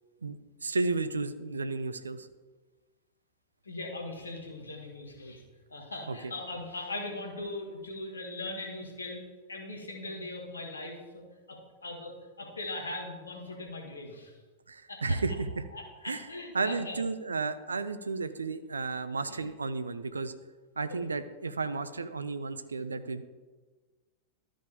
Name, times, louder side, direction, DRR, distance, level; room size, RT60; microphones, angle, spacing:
voice 1, 0.2-2.3 6.1-6.3 14.7-15.7 16.0-16.3 16.5-20.3 20.8-23.2, right 3 dB, 80° right, 12 dB, 0.5 m, -33 dB
voice 2, 3.6-5.4 5.7-14.3 14.9-15.2 15.7-17.0 19.3-19.5 20.9-21.0, left 2 dB, 80° left, 1 dB, 1.7 m, -40 dB
13.0 x 5.0 x 3.5 m, 1.3 s
figure-of-eight pair, 95°, 0 cm